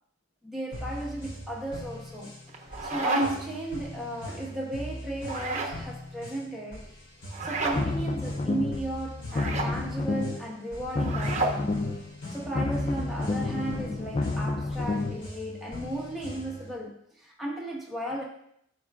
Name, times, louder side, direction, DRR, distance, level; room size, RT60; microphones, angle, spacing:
voice 1, 0.4-2.3 2.8-6.9 7.4-11.8 12.3-18.2, right 1 dB, ahead, -4 dB, 1.2 m, -35 dB
sound 1, 0.7-16.7, equal, 50° left, 2.6 m, -42 dB
sound 2, 2.5-3.6 5.2-5.8 7.3-7.8 9.3-9.7 11.0-11.6, right 2 dB, 35° right, 1.0 m, -30 dB
sound 3, 7.6-8.9 9.2-10.5 10.8-12.1 12.4-15.2, left 3 dB, 30° left, 0.3 m, -30 dB
13.0 x 4.6 x 2.4 m, 0.73 s
head